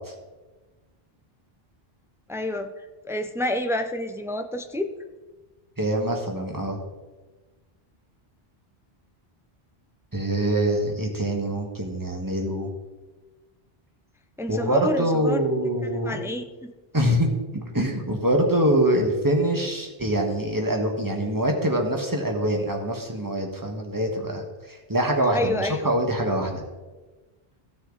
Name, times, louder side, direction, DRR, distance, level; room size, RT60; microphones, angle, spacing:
voice 1, 2.3-2.7 3.0-4.9 14.4-15.4 16.0-16.7 25.3-25.9, left 1 dB, 5° right, 7 dB, 0.3 m, -28 dB
voice 2, 5.8-6.8 10.1-12.7 14.5-16.2 16.9-17.3 17.7-26.6, right 1 dB, 20° right, 2 dB, 1.4 m, -24 dB
15.5 x 6.4 x 3.9 m, 1.2 s
omnidirectional pair, 1.0 m